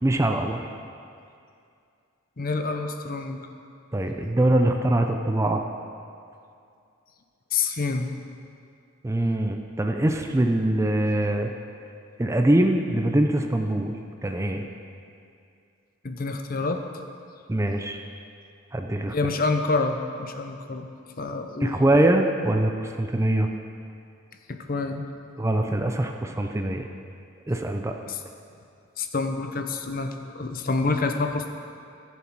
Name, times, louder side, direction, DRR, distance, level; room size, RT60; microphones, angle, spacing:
voice 1, 0.0-0.6 3.9-5.6 9.0-11.5 12.2-14.0 14.2-14.7 17.5-18.0 18.7-19.2 21.6-23.5 25.4-26.9 27.5-27.9, right 1 dB, 15° right, 4 dB, 0.5 m, -23 dB
voice 2, 2.4-3.4 7.5-8.1 16.0-16.8 19.1-20.9 21.2-21.8 24.5-25.0 28.1-28.2 29.0-31.5, left 3 dB, 45° left, 6 dB, 0.7 m, -27 dB
14.5 x 7.2 x 4.6 m, 2.4 s
head